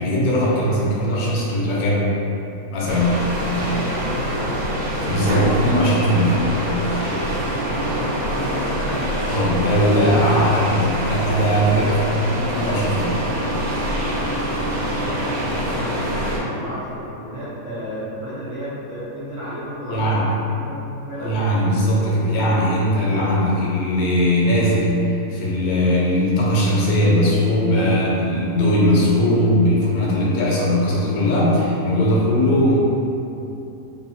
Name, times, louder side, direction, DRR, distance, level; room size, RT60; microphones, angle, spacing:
voice 1, 0.0-2.1 2.7-3.3 5.0-6.4 9.3-12.2 12.5-13.2 19.9-20.2 21.2-24.9 25.3-32.8, equal, 85° left, -5 dB, 1.1 m, -19 dB
sound 1, 2.9-16.4, equal, 90° right, 1.1 m, -25 dB
voice 2, 3.6-4.6 7.5-9.0 10.1-10.5 14.3-21.4 32.2-32.4, equal, 70° right, -11 dB, 0.4 m, -33 dB
2.7 x 2.1 x 2.7 m, 2.8 s
omnidirectional pair, 1.5 m